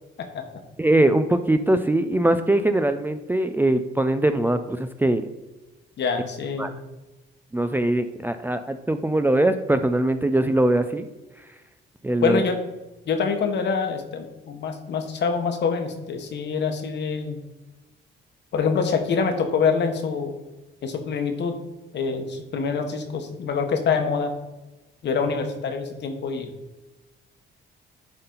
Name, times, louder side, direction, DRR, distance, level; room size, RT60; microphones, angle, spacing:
voice 1, 0.8-5.3 6.6-6.7 7.5-11.1 12.0-12.4, right 1 dB, 10° right, 9 dB, 0.4 m, -21 dB
voice 2, 6.0-6.7 12.2-12.6 13.1-17.4 18.5-20.3 20.8-21.6 21.9-24.3 25.0-26.5, left 5 dB, 60° left, 5 dB, 1.2 m, -25 dB
9.8 x 3.9 x 3.9 m, 1.1 s
cardioid pair, 90°, 20 cm